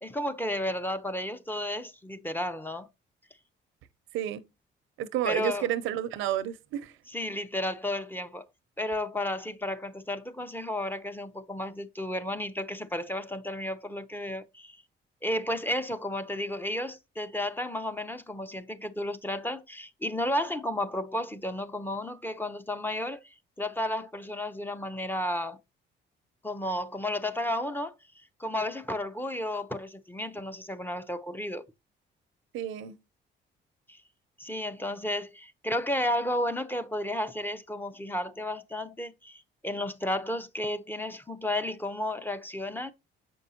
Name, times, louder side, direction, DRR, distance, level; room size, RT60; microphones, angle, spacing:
voice 1, 0.0-2.9 5.2-5.7 7.1-8.5 8.8-14.8 15.2-23.2 23.6-25.6 26.4-27.9 28.4-31.6 33.9-34.0 34.4-42.9, left 1 dB, 10° left, 0.7 m, -32 dB
voice 2, 5.0-6.9 32.5-33.0, right 11 dB, 90° right, 0.7 m, -30 dB
7.5 x 5.3 x 2.8 m
cardioid pair, 90°, 20 cm